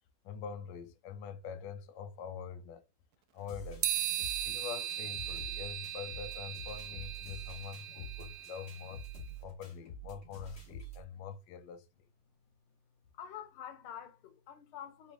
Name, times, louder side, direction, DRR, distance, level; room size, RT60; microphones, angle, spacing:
voice 1, 0.2-2.8 3.3-3.9 4.4-9.0 9.4-11.9, left 7 dB, 70° left, 1.2 m, -44 dB
sound 1, 3.5-11.0, right 2 dB, 55° left, 2.8 m, -47 dB
sound 2, 3.8-9.1, right 11 dB, 85° right, 0.8 m, -38 dB
voice 2, 13.1-15.1, left 9 dB, 90° left, 1.7 m, -47 dB
5.0 x 2.6 x 3.3 m
omnidirectional pair, 2.3 m